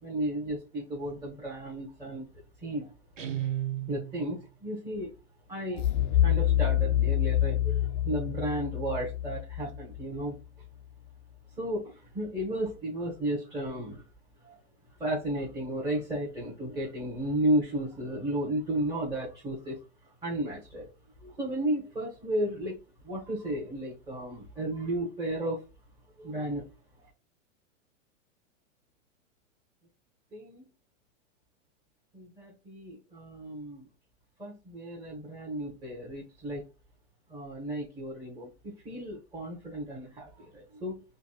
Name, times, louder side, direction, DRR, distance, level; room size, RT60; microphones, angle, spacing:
voice 1, 0.0-2.3 2.6-2.9 3.9-5.1 5.5-10.4 11.6-14.0 14.4-14.6 15.0-19.8 20.2-20.9 21.2-22.8 23.0-25.6 26.2-26.6 30.3-30.7 32.1-33.9 34.4-36.6 37.3-41.0, right 1 dB, 10° right, 1.2 m, -33 dB
Guitar, 3.2-4.4, right 12 dB, 75° right, 1.3 m, -34 dB
sound 1, 5.8-10.6, left 12 dB, 45° left, 0.4 m, -27 dB
5.1 x 2.3 x 2.3 m
hypercardioid pair, 125°, 38 cm